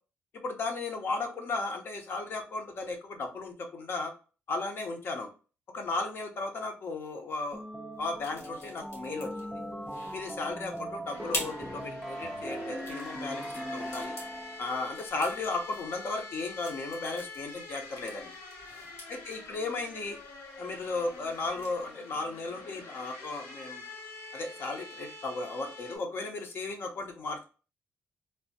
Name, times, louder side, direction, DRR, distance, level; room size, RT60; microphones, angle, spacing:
voice 1, 0.4-4.1 4.5-5.3 5.7-7.6 8.0-9.6 10.1-14.2 14.6-18.3 19.1-20.2 20.6-23.8 24.3-27.4, left 3 dB, 55° left, 3 dB, 0.8 m, -35 dB
sound 1, 7.5-14.8, equal, ahead, 0.4 m, -39 dB
sound 2, 7.9-21.9, left 1 dB, 70° left, 1.3 m, -45 dB
sound 3, 11.1-26.0, left 3 dB, 90° left, 1.0 m, -46 dB
3.3 x 2.1 x 2.7 m, 0.35 s
cardioid pair, 115°, 5 cm